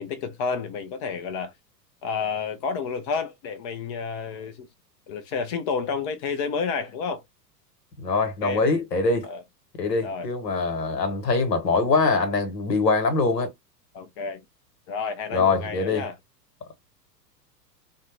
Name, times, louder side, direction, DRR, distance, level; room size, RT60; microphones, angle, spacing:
voice 1, 0.0-1.5 2.0-4.7 5.1-7.2 8.4-8.6 9.2-9.4 10.0-10.3 13.9-14.4 14.9-16.1, left 5 dB, 25° left, 0.3 m, -30 dB
voice 2, 8.0-9.3 9.8-13.5 15.3-16.1, left 4 dB, 80° left, 1.1 m, -23 dB
2.5 x 2.0 x 2.9 m
figure-of-eight pair, 90°, 49 cm